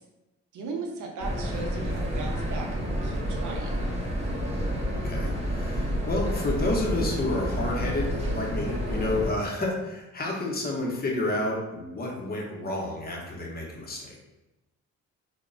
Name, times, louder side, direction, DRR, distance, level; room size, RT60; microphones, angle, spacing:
voice 1, 0.5-3.8, right 4 dB, 75° right, -1 dB, 0.7 m, -37 dB
sound 1, 1.2-9.3, equal, 20° right, 0.7 m, -29 dB
voice 2, 4.9-14.2, left 2 dB, 30° left, -2 dB, 0.7 m, -30 dB
2.1 x 2.0 x 3.7 m, 1.0 s
cardioid pair, 90°, 30 cm